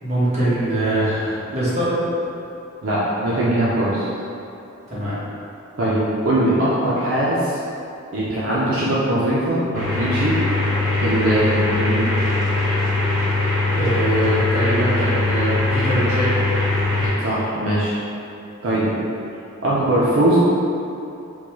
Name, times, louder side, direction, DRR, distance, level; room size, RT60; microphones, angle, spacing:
voice 1, 0.0-2.0 4.9-5.2 13.7-16.3, right 1 dB, 30° right, -11 dB, 1.0 m, -22 dB
voice 2, 2.8-4.0 5.8-7.6 8.1-10.4 11.0-12.2 16.9-17.9 18.6-18.9 19.6-20.4, right 1 dB, 65° right, -8 dB, 0.5 m, -21 dB
sound 1, 9.7-17.1, left 2 dB, 10° right, 1.4 m, -21 dB
3.8 x 2.3 x 3.0 m, 2.8 s
head